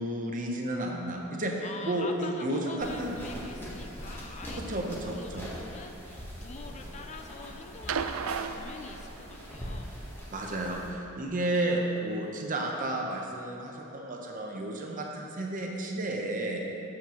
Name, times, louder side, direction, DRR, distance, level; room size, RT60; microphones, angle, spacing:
voice 1, 0.0-1.5 1.8-3.2 4.7-5.5 10.3-16.7, right 1 dB, 40° right, 0 dB, 0.8 m, -32 dB
voice 2, 1.6-9.9, left 4 dB, 35° left, 5 dB, 0.3 m, -45 dB
sound 1, 2.8-10.9, equal, 10° left, 1.1 m, -42 dB
sound 2, 7.9-9.5 10.8-10.9, right 6 dB, 70° right, 0.3 m, -34 dB
8.7 x 7.2 x 3.0 m, 2.8 s
head